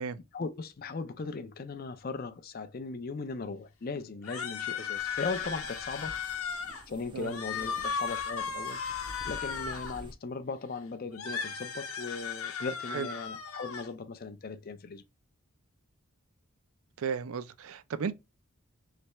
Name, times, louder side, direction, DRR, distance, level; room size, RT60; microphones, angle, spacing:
voice 1, 0.3-6.2 6.9-8.8 9.3-15.0, left 4 dB, 40° left, 0.4 m, -38 dB
sound 1, 4.2-6.8 7.2-10.0 11.1-13.9, left 6 dB, 75° left, 0.8 m, -36 dB
sound 2, 5.0-10.1, right 1 dB, 20° right, 0.6 m, -50 dB
voice 2, 17.0-18.1, right 6 dB, 70° right, 0.4 m, -34 dB
3.3 x 3.2 x 2.9 m
head